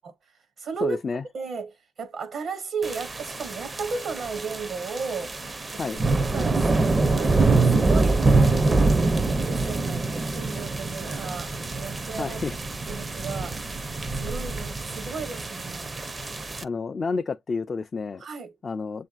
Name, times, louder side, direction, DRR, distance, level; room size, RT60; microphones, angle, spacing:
voice 1, 0.2-1.0 1.3-5.3 5.7-5.8 6.3-8.7 9.3-12.4 12.9-13.6 14.1-15.9 18.2-18.5, right 5 dB, 60° right, 0.7 m, -35 dB
voice 2, 0.8-1.2 5.8-6.0 12.2-12.6 16.6-18.3 18.6-19.1, left 4 dB, 35° left, 0.3 m, -30 dB
sound 1, 2.8-16.6, right 3 dB, 25° right, 0.5 m, -25 dB
sound 2, 5.9-14.7, right 1 dB, 80° right, 1.1 m, -42 dB
7.0 x 2.5 x 2.3 m
cardioid pair, 90°, 0 cm